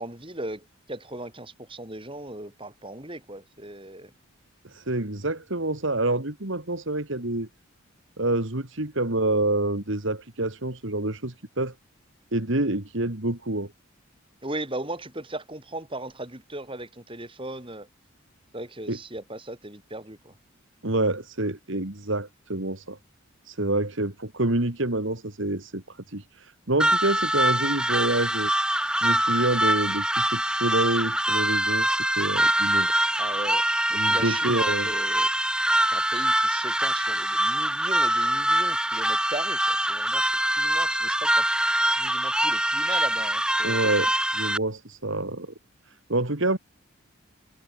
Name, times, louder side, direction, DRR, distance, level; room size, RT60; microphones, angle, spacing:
voice 1, 0.0-4.1 14.4-17.9 18.5-20.3 33.2-33.6 33.9-35.3 35.9-41.5 42.0-43.8, right 1 dB, 25° right, 6.7 m, -37 dB
voice 2, 4.6-7.5 8.2-11.7 12.3-13.7 18.9-19.0 20.8-23.0 23.5-28.5 29.0-32.9 33.9-34.9 43.6-45.5 46.1-46.6, right 2 dB, 60° right, 2.3 m, -27 dB
sound 1, 26.8-44.6, right 1 dB, 5° right, 2.5 m, -24 dB
head